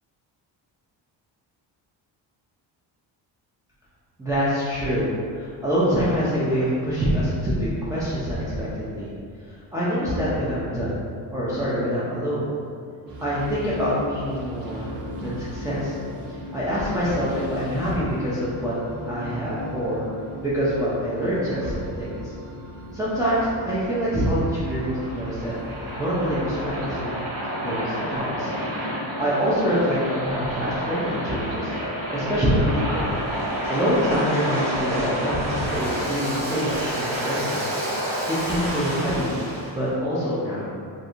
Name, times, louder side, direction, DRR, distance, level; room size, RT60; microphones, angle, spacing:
voice 1, 4.2-9.1 9.4-11.0 11.3-12.5 13.2-16.0 16.3-18.8 19.1-20.1 20.4-22.3 22.9-25.5 26.0-27.2 27.5-28.5 28.8-31.7 32.1-33.1 33.4-37.6 38.3-39.4 39.7-40.7, equal, 10° right, -11 dB, 0.4 m, -25 dB
sound 1, 13.1-27.0, equal, 50° right, 0.7 m, -38 dB
Waves surf, 24.0-39.7, equal, 85° right, 1.2 m, -29 dB
2.7 x 2.5 x 2.4 m, 2.3 s
cardioid pair, 95°, 46 cm